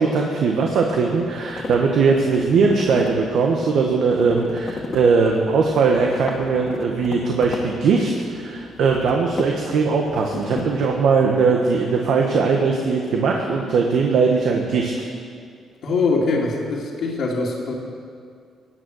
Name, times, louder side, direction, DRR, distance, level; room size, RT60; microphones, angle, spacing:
voice 1, 0.0-14.9, right 4 dB, 75° right, 1 dB, 1.3 m, -20 dB
sound 1, 1.1-11.5, left 3 dB, 40° left, 1.8 m, -36 dB
voice 2, 15.8-17.7, left 3 dB, 70° left, -7 dB, 2.2 m, -22 dB
17.5 x 9.3 x 6.4 m, 2.3 s
cardioid pair, 90°, 0 cm